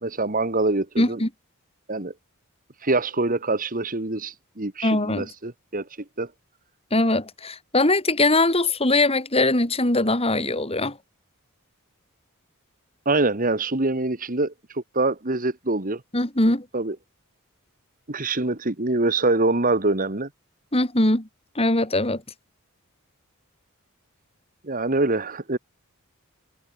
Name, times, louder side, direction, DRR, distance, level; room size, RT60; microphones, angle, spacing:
voice 1, 0.0-1.2 1.9-2.1 2.8-5.9 6.2-6.3 13.1-16.0 16.7-17.0 18.1-20.3 24.6-25.6, right 2 dB, 40° right, 2.0 m, -24 dB
voice 2, 1.0-1.3 4.8-5.3 6.9-11.0 16.1-16.7 20.7-21.3 21.6-22.2, left 2 dB, 25° left, 3.7 m, -21 dB
head